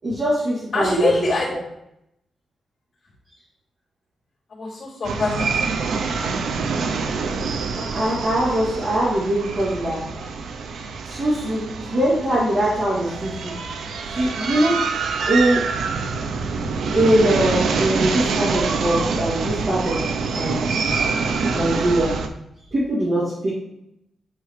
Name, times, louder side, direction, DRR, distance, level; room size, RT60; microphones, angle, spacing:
voice 1, 0.0-1.1 7.7-10.0 11.0-13.5 14.0-14.8 15.3-15.6 16.9-20.0 20.3-20.7 21.5-22.2 22.7-23.5, right 1 dB, 40° right, -11 dB, 2.6 m, -22 dB
voice 2, 0.7-1.5 4.5-5.6 5.9-6.4 10.1-10.3, left 2 dB, 35° left, -10 dB, 3.1 m, -24 dB
sound 1, 5.0-22.3, right 4 dB, 80° right, 0.6 m, -26 dB
10.5 x 4.7 x 3.2 m, 0.82 s
wide cardioid pair, 175°, 0 cm